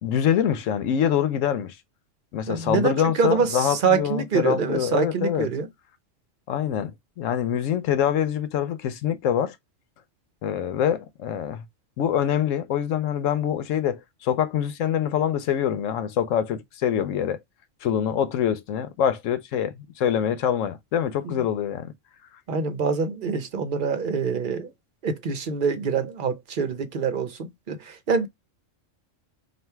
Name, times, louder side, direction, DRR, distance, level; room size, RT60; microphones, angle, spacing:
voice 1, 0.0-1.8 2.3-5.5 6.5-9.5 10.4-11.7 12.0-17.4 17.8-21.9, left 9 dB, 90° left, 1.0 m, -25 dB
voice 2, 2.5-5.7 21.2-21.4 22.5-24.7 25.0-28.3, right 5 dB, 50° right, 0.8 m, -25 dB
3.4 x 2.4 x 4.4 m
omnidirectional pair, 1.3 m